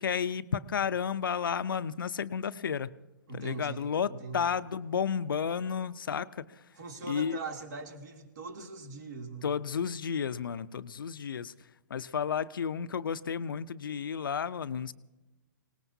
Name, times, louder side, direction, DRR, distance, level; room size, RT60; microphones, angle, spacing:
voice 1, 0.0-2.9 3.3-6.4 7.1-7.4 9.4-11.5 11.9-14.9, left 7 dB, 80° left, 14 dB, 0.6 m, -32 dB
voice 2, 3.3-4.5 6.7-9.5, right 4 dB, 60° right, 3 dB, 2.9 m, -41 dB
24.5 x 19.0 x 2.7 m, 1.1 s
hypercardioid pair, 135°, 11 cm